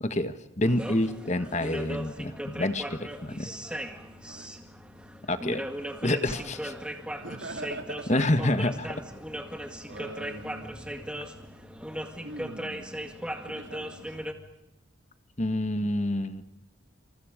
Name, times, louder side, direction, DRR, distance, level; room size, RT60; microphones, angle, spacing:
voice 1, 0.0-3.5 5.3-5.6 6.0-6.7 8.1-9.0 15.4-16.4, left 1 dB, 35° left, 10 dB, 1.5 m, -28 dB
sound 1, 0.6-14.3, equal, 5° right, 2.0 m, -38 dB
voice 2, 4.2-4.5 7.1-8.1 9.9-10.8 12.2-12.9 13.4-14.2, right 2 dB, 75° right, 5 dB, 3.4 m, -41 dB
28.5 x 27.5 x 5.1 m, 0.93 s
head